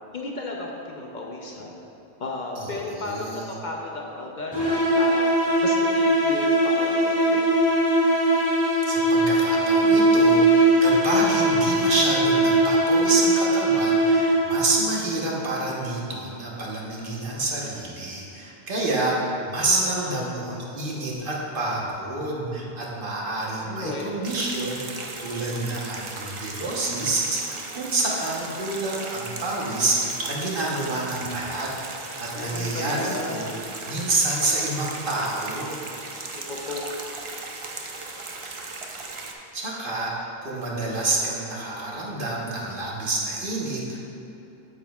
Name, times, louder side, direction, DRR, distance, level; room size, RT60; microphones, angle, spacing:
voice 1, 0.1-1.7 2.2-5.3 5.6-7.4 19.6-20.3 23.6-24.2 32.3-33.5 36.3-36.9, left 2 dB, 50° left, -1 dB, 0.7 m, -34 dB
voice 2, 2.6-3.5 8.9-31.7 32.2-33.5 33.9-35.8 39.5-44.0, right 2 dB, 60° right, -4 dB, 1.2 m, -28 dB
sound 1, 4.5-14.7, right 1 dB, 25° left, 1.6 m, -20 dB
sound 2, 24.2-39.3, right 3 dB, 40° right, 0.5 m, -37 dB
8.3 x 7.3 x 2.3 m, 2.9 s
omnidirectional pair, 1.0 m